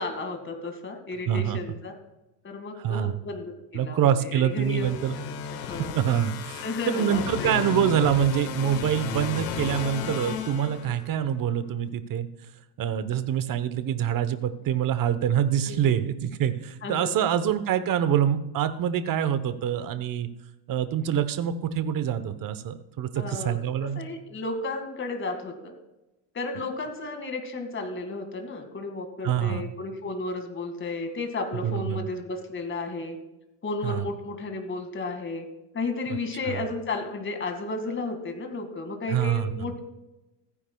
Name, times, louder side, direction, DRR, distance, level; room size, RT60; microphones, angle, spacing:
voice 1, 0.0-1.9 2.4-6.0 6.6-7.6 15.6-16.0 16.8-17.3 23.1-25.7 26.3-33.2 33.6-35.5 35.7-39.8, left 3 dB, 25° left, 5 dB, 2.1 m, -33 dB
voice 2, 1.3-1.6 2.8-3.2 3.7-5.1 5.9-12.3 12.8-20.3 20.7-24.0 29.2-29.6 31.6-32.0 33.8-34.1 39.1-39.5, right 9 dB, 40° right, 12 dB, 1.0 m, -25 dB
sound 1, 4.6-11.3, left 8 dB, 80° left, 1.7 m, -34 dB
15.5 x 9.8 x 2.3 m, 0.95 s
supercardioid pair, 100°, 49 cm